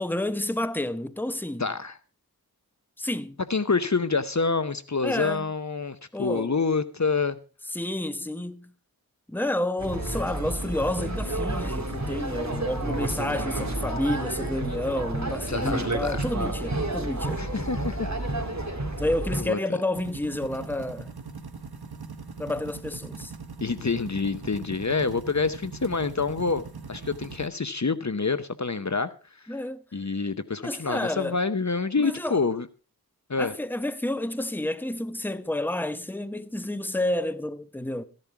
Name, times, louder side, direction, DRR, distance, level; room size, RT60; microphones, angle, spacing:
voice 1, 0.0-1.7 3.0-3.4 5.0-5.5 6.1-6.5 7.7-8.7 9.3-17.4 19.0-21.1 22.4-23.3 29.5-29.8 30.6-31.4 32.0-32.4 33.4-38.0, left 1 dB, 5° left, 0.9 m, -30 dB
voice 2, 1.6-2.0 3.5-7.4 15.5-16.3 17.4-18.1 19.3-19.6 23.6-26.6 26.9-29.1 29.9-32.7 33.3-33.6, left 4 dB, 50° left, 0.8 m, -27 dB
sound 1, 9.8-19.4, right 2 dB, 50° right, 2.6 m, -30 dB
sound 2, 19.9-27.5, right 5 dB, 85° right, 1.3 m, -41 dB
14.5 x 11.0 x 4.6 m
wide cardioid pair, 40°, 37 cm